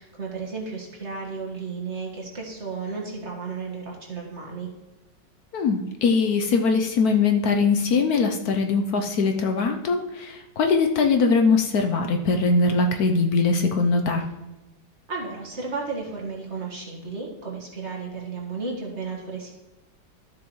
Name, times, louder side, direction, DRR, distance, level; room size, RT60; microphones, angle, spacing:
voice 1, 0.0-4.7 15.1-19.5, right 4 dB, 40° right, -1 dB, 1.7 m, -33 dB
voice 2, 5.5-14.2, left 4 dB, 65° left, 5 dB, 1.1 m, -21 dB
12.5 x 7.1 x 3.1 m, 1.0 s
omnidirectional pair, 1.9 m